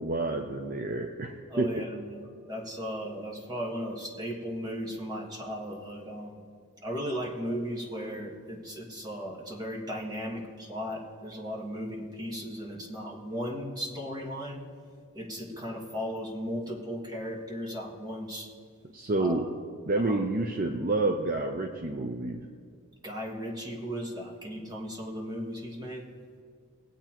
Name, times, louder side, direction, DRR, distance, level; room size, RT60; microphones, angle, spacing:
voice 1, 0.0-1.7 18.9-19.5 19.9-22.5, right 2 dB, 40° right, 4 dB, 0.5 m, -29 dB
voice 2, 1.5-6.4 6.8-14.6 15.1-18.5 19.2-19.5 20.0-20.2 23.0-26.1, equal, 15° right, 0 dB, 1.4 m, -36 dB
22.0 x 8.1 x 2.9 m, 2.1 s
head